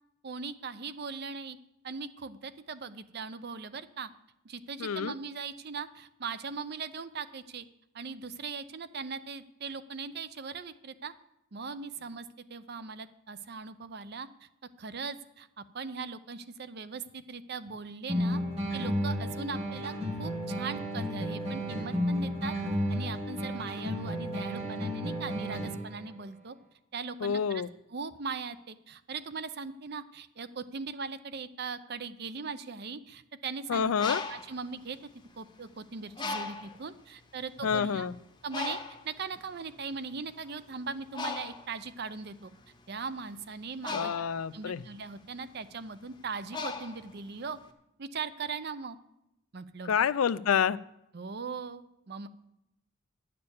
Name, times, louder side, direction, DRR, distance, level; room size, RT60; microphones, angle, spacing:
voice 1, 0.2-1.6 1.8-4.1 4.4-7.7 7.9-11.1 11.5-14.5 14.8-18.4 18.7-22.6 22.9-26.6 26.9-27.6 27.9-33.8 34.3-35.0 35.4-38.1 38.4-42.5 42.9-44.1 44.5-47.6 48.0-49.0 49.5-49.9 51.1-52.3, right 5 dB, 50° right, 14 dB, 0.5 m, -39 dB
voice 2, 4.8-5.1 27.2-27.7 33.7-34.2 37.6-38.1 43.9-44.8 49.9-50.8, left 7 dB, 85° left, 17 dB, 0.4 m, -28 dB
sound 1, 18.1-26.1, equal, 30° right, 1.9 m, -32 dB
Bird, 33.8-35.6 36.2-36.9 37.5-37.7 37.9-47.7, left 4 dB, 20° left, 0.7 m, -39 dB
10.5 x 6.8 x 7.0 m, 0.84 s
head